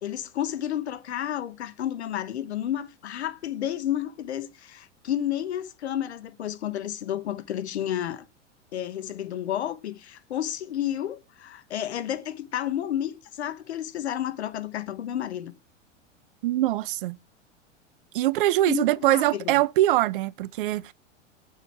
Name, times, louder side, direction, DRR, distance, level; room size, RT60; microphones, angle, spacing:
voice 1, 0.0-8.3 8.7-15.5 18.6-19.5, left 11 dB, 60° left, 1.1 m, -31 dB
voice 2, 16.4-17.2 18.1-20.9, right 15 dB, 45° right, 0.5 m, -23 dB
6.7 x 6.2 x 4.6 m
figure-of-eight pair, 95°, 37 cm